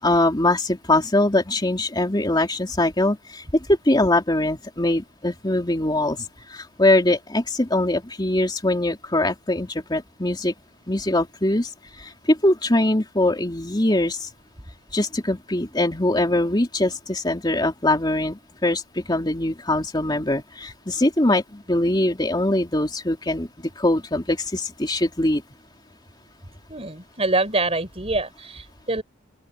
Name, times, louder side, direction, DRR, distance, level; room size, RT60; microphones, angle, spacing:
voice 1, 0.0-10.5 10.9-14.3 14.9-23.5 23.8-25.4, left 1 dB, 20° left, 3.2 m, -22 dB
voice 2, 26.7-29.0, right 2 dB, 30° right, 5.7 m, -25 dB
open air
head